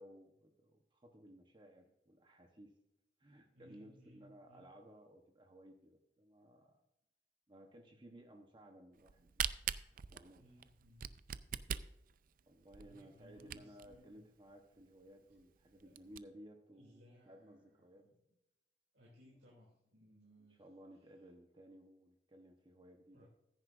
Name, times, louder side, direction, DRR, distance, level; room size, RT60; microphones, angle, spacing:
voice 1, 0.0-2.8 3.2-6.8 7.5-9.5 10.1-10.4 12.5-18.1 20.5-23.3, equal, 30° right, 3 dB, 1.0 m, -58 dB
voice 2, 3.5-4.7 10.4-11.2 12.8-14.2 15.7-15.8 16.7-18.1 18.9-20.6 23.1-23.3, equal, 75° right, -4 dB, 2.8 m, -64 dB
Camera, 9.0-14.0 14.5-14.6 14.8-14.9 15.4-15.5 15.8-16.2, right 9 dB, 50° right, 0.4 m, -41 dB
15.0 x 10.0 x 2.5 m, 0.89 s
head